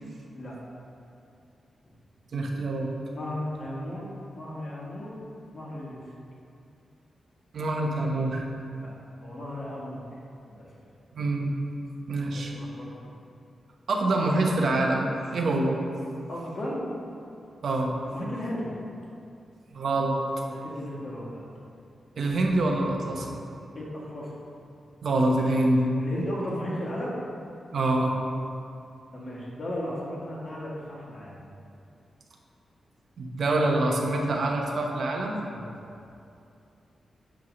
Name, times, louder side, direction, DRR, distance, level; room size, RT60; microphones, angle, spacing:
voice 1, 2.3-2.9 7.5-8.5 11.1-11.5 12.1-12.5 13.9-15.8 17.6-18.0 19.7-20.2 22.2-23.3 25.0-25.9 27.7-28.1 33.2-35.4, right 2 dB, 60° right, 0 dB, 0.9 m, -25 dB
voice 2, 3.1-4.1 4.3-5.2 5.5-6.0 8.8-8.9 9.2-10.1 10.5-10.7 12.2-13.0 16.3-16.9 18.0-18.8 20.5-21.4 23.7-24.4 26.0-27.1 29.1-31.4 35.5-35.8, left 1 dB, 45° left, -5 dB, 1.4 m, -35 dB
8.2 x 3.2 x 6.1 m, 2.6 s
wide cardioid pair, 165°, 0 cm